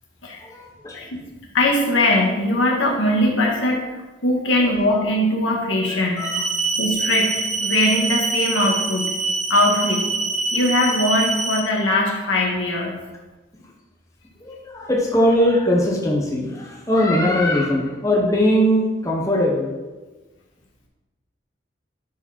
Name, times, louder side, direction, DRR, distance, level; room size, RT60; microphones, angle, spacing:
voice 1, 0.4-1.1 4.5-5.0 5.9-6.4 14.4-19.7, equal, 15° left, -2 dB, 1.0 m, -21 dB
voice 2, 1.5-3.8 4.2-6.2 6.8-9.1 9.5-10.1 10.5-12.9, left 1 dB, 80° left, -1 dB, 1.9 m, -20 dB
sound 1, 6.2-11.6, right 4 dB, 40° right, 0.9 m, -24 dB
11.5 x 4.9 x 4.4 m, 1.2 s
head